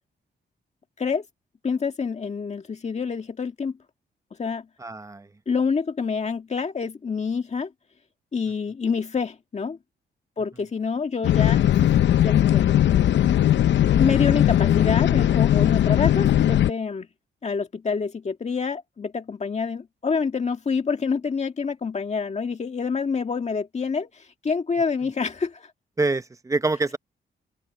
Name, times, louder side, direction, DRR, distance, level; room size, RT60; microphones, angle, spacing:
voice 1, 1.6-3.7 4.4-4.7 5.5-7.7 8.3-9.8 10.4-12.0 12.2-12.6 13.9-17.1 17.4-25.7, left 5 dB, 35° left, 1.7 m, -27 dB
voice 2, 4.8-5.3 26.0-27.0, right 3 dB, 15° right, 0.8 m, -25 dB
sound 1, 11.2-16.7, left 11 dB, 75° left, 0.8 m, -19 dB
open air
cardioid pair, 100°, 19 cm